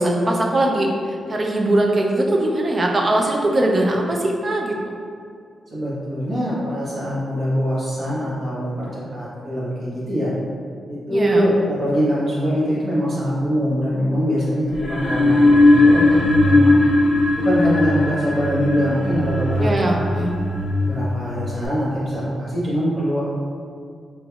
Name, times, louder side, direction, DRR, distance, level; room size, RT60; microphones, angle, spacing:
voice 1, 0.0-4.8 11.1-11.5 19.6-20.3, right 1 dB, 30° right, 0 dB, 0.4 m, -20 dB
voice 2, 5.7-10.3 10.9-16.8 17.3-20.1 20.8-23.2, equal, 45° right, -8 dB, 1.0 m, -23 dB
sound 1, 14.7-21.7, left 2 dB, 50° left, 0.4 m, -18 dB
3.3 x 3.0 x 2.3 m, 2.2 s
wide cardioid pair, 145°, 0 cm